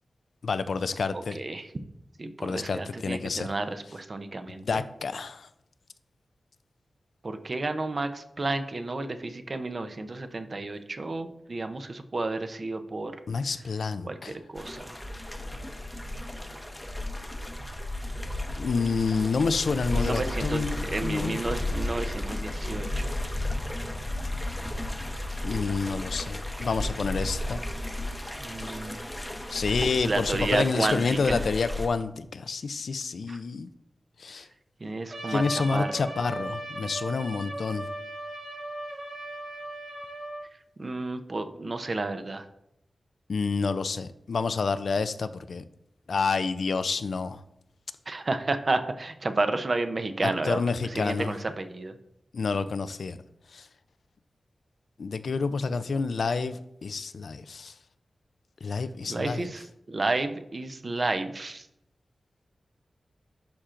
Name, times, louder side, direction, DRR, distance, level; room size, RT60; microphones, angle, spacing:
voice 1, 0.4-1.4 2.4-3.5 4.5-5.5 13.3-14.4 18.6-20.8 21.0-21.4 25.4-27.6 29.5-33.7 34.2-34.5 35.3-37.9 43.3-45.6 46.1-47.4 50.2-51.4 52.3-53.2 53.5-53.7 55.0-57.7 58.6-59.5, left 4 dB, 75° left, 12 dB, 0.4 m, -29 dB
voice 2, 1.3-1.7 2.2-4.8 7.2-13.1 14.0-14.9 19.9-23.1 28.4-29.0 30.0-31.4 33.3-33.4 34.8-35.5 35.7-35.9 40.8-42.4 48.1-50.6 50.9-52.0 59.1-61.7, right 2 dB, 40° right, 8 dB, 0.6 m, -31 dB
sound 1, 14.6-31.9, left 1 dB, 10° left, 0.7 m, -33 dB
Trumpet, 35.1-40.4, right 1 dB, 75° right, 2.3 m, -37 dB
11.5 x 4.3 x 2.5 m, 0.78 s
wide cardioid pair, 105°, 0 cm